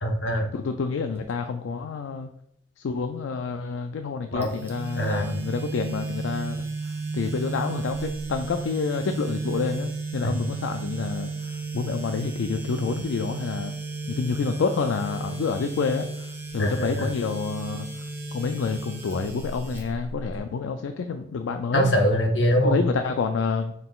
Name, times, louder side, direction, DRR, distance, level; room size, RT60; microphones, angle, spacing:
voice 1, 0.0-0.5 4.3-4.5 5.0-5.3 10.2-10.3 16.6-17.1 21.7-22.8, equal, 65° left, 2 dB, 0.9 m, -23 dB
voice 2, 0.5-2.3 2.8-13.7 14.1-21.9 22.6-23.7, left 5 dB, 80° left, 7 dB, 0.3 m, -28 dB
sound 1, 4.4-20.4, right 3 dB, 10° right, 0.7 m, -33 dB
5.6 x 3.8 x 2.3 m, 0.75 s
head